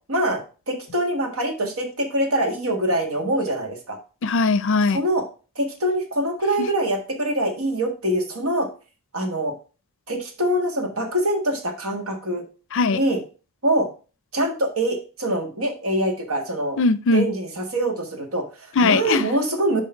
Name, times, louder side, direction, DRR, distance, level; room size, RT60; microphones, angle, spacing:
voice 1, 0.1-0.4 0.7-4.0 4.9-5.2 5.5-8.7 9.1-9.5 10.1-12.4 12.9-13.2 13.6-13.9 14.3-16.8 17.1-19.8, right 1 dB, 65° right, 1.6 m, -24 dB
voice 2, 4.2-5.0 6.6-6.7 12.7-13.0 16.8-17.3 18.8-19.3, left 4 dB, 60° left, 0.5 m, -20 dB
6.5 x 5.2 x 4.4 m
head